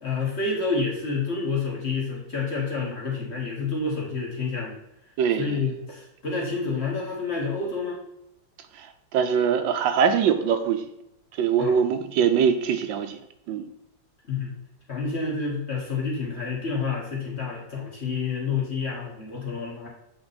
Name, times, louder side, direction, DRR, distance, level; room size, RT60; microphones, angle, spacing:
voice 1, 0.0-4.8 5.4-8.0 11.6-11.8 14.3-14.5 14.9-19.9, left 4 dB, 35° left, -4 dB, 1.7 m, -29 dB
voice 2, 5.2-5.6 8.8-8.9 9.1-10.9 11.4-13.2 13.5-13.7, right 7 dB, 80° right, 8 dB, 1.3 m, -22 dB
7.9 x 3.8 x 4.1 m, 0.83 s
omnidirectional pair, 2.1 m